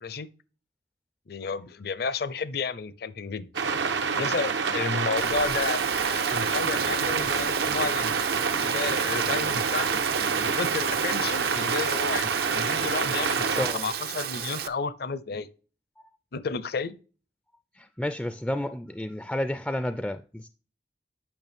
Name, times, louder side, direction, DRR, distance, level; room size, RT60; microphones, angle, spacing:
voice 1, 1.3-3.5 4.2-5.8 6.1-8.1 8.6-10.0 10.4-15.5 16.3-16.9, left 4 dB, 60° left, 0.6 m, -32 dB
sound 1, 3.5-13.7, right 5 dB, 85° right, 0.9 m, -27 dB
Rain, 5.2-14.7, right 8 dB, 60° right, 0.5 m, -33 dB
voice 2, 13.6-13.9 17.8-20.5, left 1 dB, 5° left, 0.3 m, -31 dB
8.9 x 6.1 x 3.5 m
head